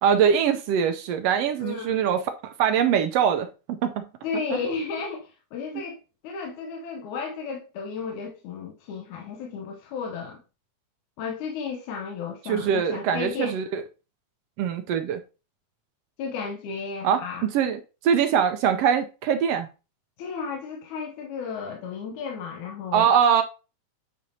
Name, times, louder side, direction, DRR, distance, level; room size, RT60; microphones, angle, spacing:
voice 1, 0.0-3.5 3.8-4.0 4.5-4.6 5.7-5.8 12.5-13.8 14.6-15.2 17.0-17.2 17.5-19.7 22.9-23.4, right 8 dB, 80° right, 1.5 m, -23 dB
voice 2, 1.6-2.0 4.2-6.0 6.2-10.4 11.2-13.5 16.2-17.5 20.2-23.1, left 5 dB, 90° left, 2.3 m, -33 dB
9.1 x 5.1 x 2.8 m
omnidirectional pair, 3.4 m